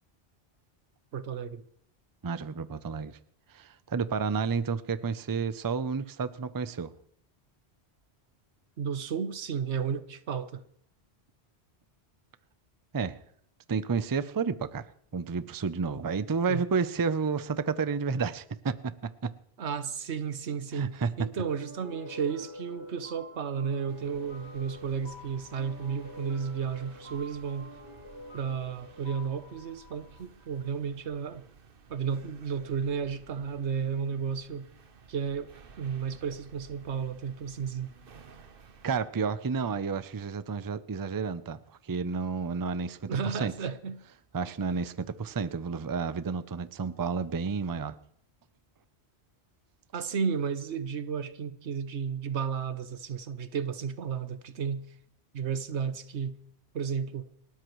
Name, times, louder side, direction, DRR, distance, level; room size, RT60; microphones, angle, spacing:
voice 1, 1.1-1.6 8.8-10.6 16.5-16.6 19.6-27.7 28.3-31.4 31.9-34.7 35.1-35.5 35.8-37.9 43.1-44.0 49.9-54.9 55.3-56.4 56.7-57.3, right 6 dB, 90° right, 1.2 m, -33 dB
voice 2, 2.2-3.1 3.5-6.9 12.9-13.2 13.7-14.9 15.1-19.3 20.7-21.1 38.8-43.5 44.3-48.0, right 5 dB, 30° right, 0.4 m, -31 dB
sound 1, 21.5-30.8, left 1 dB, 25° left, 2.9 m, -47 dB
sound 2, 23.9-39.0, right 5 dB, 55° right, 1.1 m, -55 dB
29.5 x 13.0 x 3.1 m
omnidirectional pair, 1.1 m